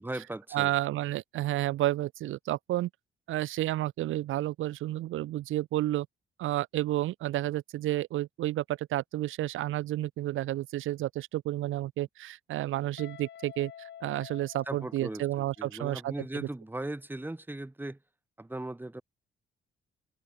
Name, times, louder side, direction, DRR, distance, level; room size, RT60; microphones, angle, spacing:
voice 1, 0.0-0.7 14.7-18.0 18.4-19.0, right 1 dB, 10° right, 3.0 m, -38 dB
voice 2, 0.5-2.9 3.3-6.1 6.4-16.5, right 15 dB, 85° right, 3.7 m, -31 dB
Guitar, 13.0-15.8, left 9 dB, 65° left, 3.7 m, -49 dB
cardioid pair, 90°, 20 cm